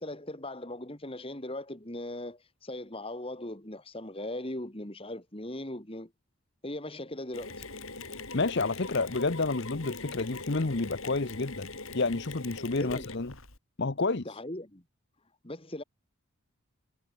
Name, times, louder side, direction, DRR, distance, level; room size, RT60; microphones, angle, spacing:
voice 1, 0.0-6.1 6.6-7.6 12.8-13.1 14.3-14.8 15.4-15.8, left 1 dB, 25° left, 2.2 m, -39 dB
Mechanisms, 7.3-13.6, left 3 dB, 65° left, 6.9 m, -42 dB
voice 2, 8.3-11.7 11.9-13.3 13.8-14.3, left 3 dB, 50° left, 0.9 m, -29 dB
head